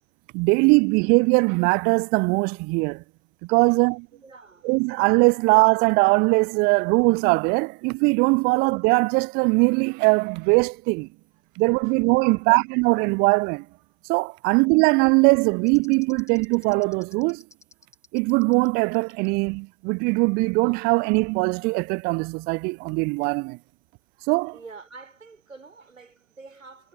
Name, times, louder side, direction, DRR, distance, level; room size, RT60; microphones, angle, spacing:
voice 1, 0.3-3.0 3.5-4.1 4.6-11.1 11.6-13.7 14.1-17.4 18.1-23.6 24.3-24.5, right 30 dB, 25° right, 0.4 m, -21 dB
voice 2, 4.1-4.7 11.8-12.0 12.3-12.6 14.4-14.6 24.5-26.9, right 4 dB, 80° right, 5.9 m, -47 dB
sound 1, 15.7-18.7 18.9-19.3, left 2 dB, 5° left, 3.2 m, -51 dB
figure-of-eight pair, 85°, 39 cm